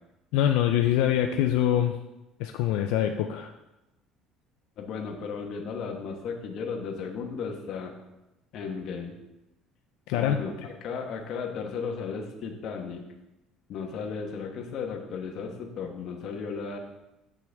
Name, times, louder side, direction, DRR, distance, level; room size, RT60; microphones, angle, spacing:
voice 1, 0.3-2.0 2.4-3.5 10.1-10.4, left 11 dB, 90° left, 5 dB, 0.4 m, -24 dB
voice 2, 4.8-7.9 8.5-9.2 10.1-13.0 13.7-16.8, left 5 dB, 50° left, 2 dB, 1.1 m, -35 dB
7.8 x 6.1 x 3.5 m, 0.96 s
cardioid pair, 145°, 0 cm